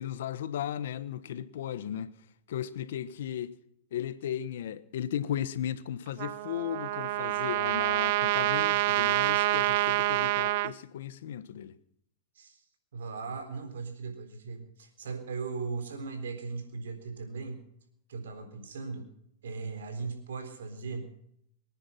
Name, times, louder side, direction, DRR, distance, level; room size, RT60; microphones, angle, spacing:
voice 1, 0.0-2.1 2.5-3.6 3.9-11.7, left 10 dB, 75° left, 1.2 m, -36 dB
Trumpet, 6.2-10.7, right 16 dB, 60° right, 0.6 m, -27 dB
voice 2, 12.9-17.6 18.1-19.1 19.4-21.1, right 4 dB, 90° right, 3.9 m, -38 dB
24.0 x 9.9 x 5.8 m
hypercardioid pair, 125°, 0 cm